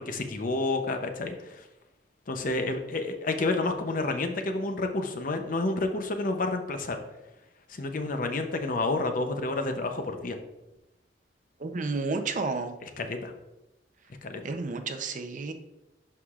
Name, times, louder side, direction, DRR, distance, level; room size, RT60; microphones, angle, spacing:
voice 1, 0.0-1.6 2.3-7.0 7.7-10.4 13.0-13.3 14.2-14.4, left 2 dB, 50° left, 6 dB, 0.7 m, -29 dB
voice 2, 11.6-12.7 14.4-15.5, right 3 dB, 45° right, 6 dB, 0.6 m, -31 dB
11.0 x 4.8 x 2.4 m, 0.98 s
head